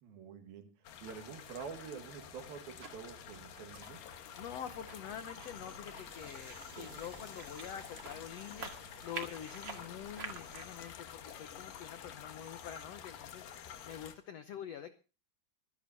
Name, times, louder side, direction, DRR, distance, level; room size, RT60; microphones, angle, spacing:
voice 1, 0.0-4.0 6.7-7.0, right 7 dB, 85° right, 6 dB, 3.6 m, -48 dB
sound 1, 0.8-14.1, left 9 dB, 70° left, 2.9 m, -49 dB
sound 2, 1.4-10.6, right 4 dB, 40° right, 2.1 m, -50 dB
voice 2, 4.4-13.5 13.8-14.9, left 9 dB, 85° left, 10 dB, 1.4 m, -46 dB
sound 3, 4.6-10.7, right 6 dB, 55° right, 2.7 m, -59 dB
25.5 x 11.5 x 2.7 m, 0.33 s
omnidirectional pair, 4.1 m